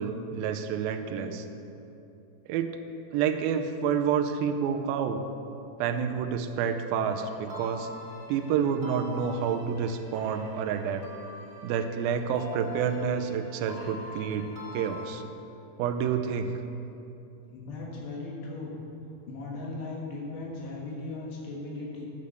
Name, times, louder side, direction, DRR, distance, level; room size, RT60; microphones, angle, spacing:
voice 1, 0.0-1.4 2.5-2.7 3.1-5.2 5.8-7.9 8.3-11.0 11.6-15.2 15.8-16.6, right 7 dB, 85° right, 7 dB, 2.1 m, -29 dB
sound 1, 7.0-15.1, left 2 dB, 65° right, 0.8 m, -45 dB
voice 2, 17.5-18.8 19.3-22.0, left 2 dB, 80° left, -3 dB, 3.7 m, -37 dB
10.5 x 6.7 x 6.8 m, 2.9 s
omnidirectional pair, 4.9 m